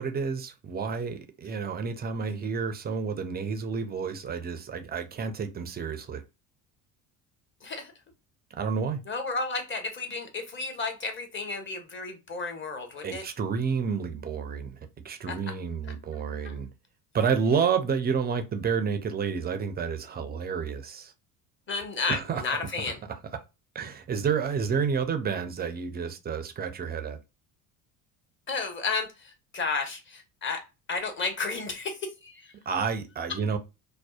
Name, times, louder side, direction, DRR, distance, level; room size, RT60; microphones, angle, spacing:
voice 1, 0.0-6.2 8.6-9.0 13.0-14.8 15.0-16.7 17.1-21.1 22.1-22.4 23.7-27.2 32.7-33.6, right 6 dB, 25° right, 0.3 m, -30 dB
voice 2, 7.6-7.9 9.1-13.2 15.3-15.5 16.1-16.5 21.7-23.0 28.5-30.6 30.9-32.5, left 4 dB, 25° left, 0.8 m, -32 dB
2.6 x 2.1 x 2.3 m
hypercardioid pair, 75°, 46 cm